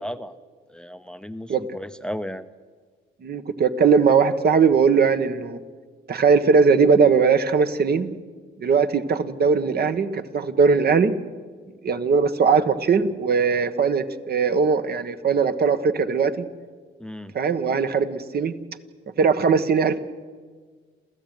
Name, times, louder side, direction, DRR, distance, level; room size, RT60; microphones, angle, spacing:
voice 1, 0.0-0.4 0.7-2.4 17.0-17.3, equal, 5° left, 12 dB, 0.8 m, -34 dB
voice 2, 3.2-5.6 6.1-8.1 8.6-11.1 11.8-16.4 17.3-18.5 19.2-20.0, right 5 dB, 50° right, 9 dB, 1.5 m, -19 dB
28.0 x 14.5 x 9.2 m, 1.5 s
cardioid pair, 90°, 20 cm